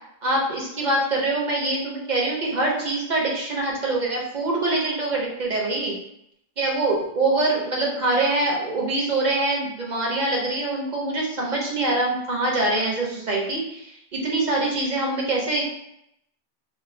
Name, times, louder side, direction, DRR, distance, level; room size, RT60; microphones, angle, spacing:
voice 1, 0.2-6.0 6.6-15.6, right 2 dB, 45° right, -3 dB, 0.9 m, -24 dB
2.5 x 2.5 x 3.7 m, 0.79 s
omnidirectional pair, 1.1 m